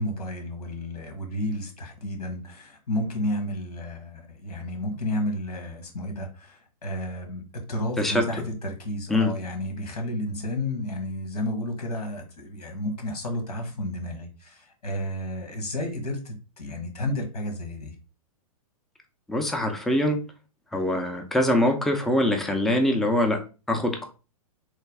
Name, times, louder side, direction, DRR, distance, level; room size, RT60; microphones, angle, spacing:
voice 1, 0.0-7.4 7.7-18.0, left 1 dB, 85° left, 4 dB, 1.2 m, -31 dB
voice 2, 19.3-20.2 20.7-23.4 23.7-24.0, left 1 dB, ahead, 4 dB, 0.3 m, -23 dB
3.3 x 2.2 x 3.3 m, 0.32 s
hypercardioid pair, 130°, 19 cm